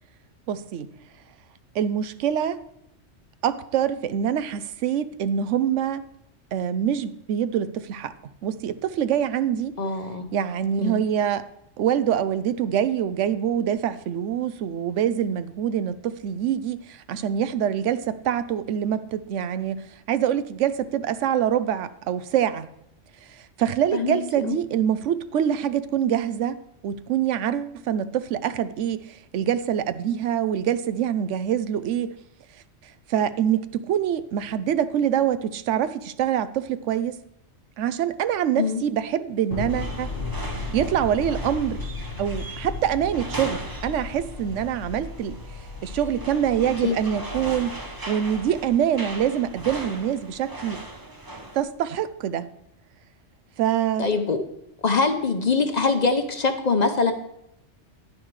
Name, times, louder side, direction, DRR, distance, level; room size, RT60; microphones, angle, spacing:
voice 1, 0.5-0.9 1.7-2.6 3.4-6.0 6.5-8.1 8.4-9.7 10.3-11.4 11.8-22.7 23.4-26.6 26.8-32.2 33.1-37.1 37.8-40.1 40.7-41.8 42.2-45.4 45.8-47.8 48.1-50.8 51.5-52.5 53.6-54.1, right 9 dB, 85° right, 14 dB, 0.9 m, -25 dB
voice 2, 9.8-10.3 10.8-11.0 23.9-24.6 38.6-38.8 46.8-47.0 54.0-54.4 54.8-57.1, left 4 dB, 45° left, 7 dB, 0.7 m, -23 dB
Thunder, 39.5-50.1, left 3 dB, 75° left, 1.6 m, -36 dB
sound 1, 39.7-51.6, right 2 dB, 20° right, 0.9 m, -39 dB
10.0 x 9.5 x 3.2 m, 0.78 s
omnidirectional pair, 1.2 m